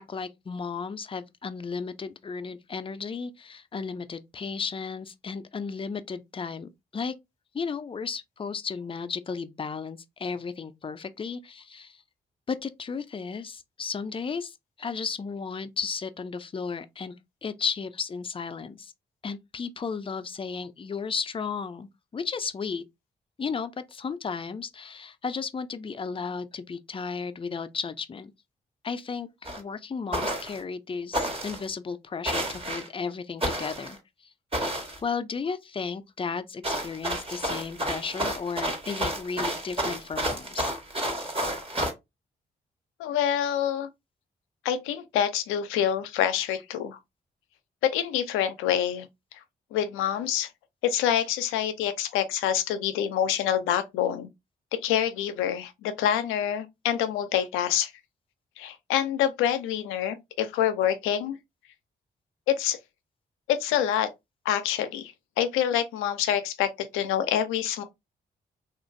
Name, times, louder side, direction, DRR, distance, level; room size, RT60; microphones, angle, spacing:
voice 1, 0.0-7.1 7.5-12.0 12.5-17.2 17.4-18.9 19.2-22.8 23.4-28.3 28.8-34.0 34.2-34.3 34.7-40.7, left 5 dB, 25° left, 0.5 m, -34 dB
sound 1, 29.4-29.6 30.1-30.6 31.1-31.7 32.2-32.9 33.4-34.0 34.5-35.0 36.6-41.9, right 1 dB, 25° right, 1.3 m, -30 dB
voice 2, 43.0-43.9 44.6-47.0 47.8-49.1 49.7-50.5 50.8-54.3 54.7-57.9 58.6-61.4 62.5-62.8 63.5-64.1 64.5-67.8, left 10 dB, 90° left, 0.4 m, -26 dB
2.9 x 2.5 x 2.5 m
supercardioid pair, 45°, 20 cm